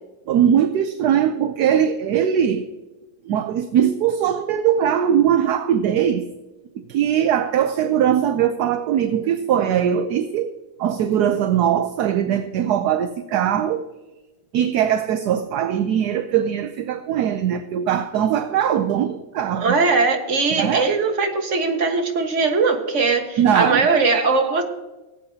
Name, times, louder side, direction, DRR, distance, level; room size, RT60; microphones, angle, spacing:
voice 1, 0.3-2.7 3.2-6.3 6.9-10.5 10.8-13.8 14.5-19.8 20.5-20.9 23.4-23.9, right 9 dB, 70° right, 9 dB, 1.1 m, -20 dB
voice 2, 19.5-24.6, right 4 dB, 40° right, 4 dB, 1.6 m, -20 dB
18.0 x 8.8 x 2.8 m, 1.1 s
omnidirectional pair, 2.1 m